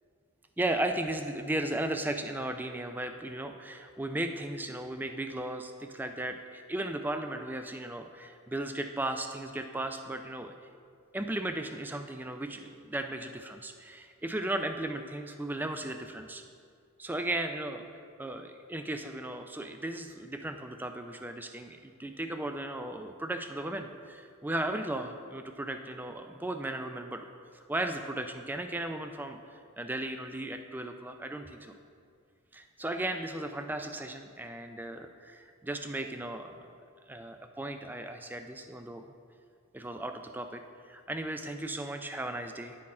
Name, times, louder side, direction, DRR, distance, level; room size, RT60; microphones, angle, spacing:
voice 1, 0.6-10.5 11.1-16.4 17.0-17.8 18.2-27.3 27.5-29.4 29.8-31.8 32.5-36.6 37.1-39.0 39.7-42.8, right 1 dB, 10° right, 6 dB, 0.3 m, -36 dB
10.5 x 4.3 x 4.2 m, 2.2 s
head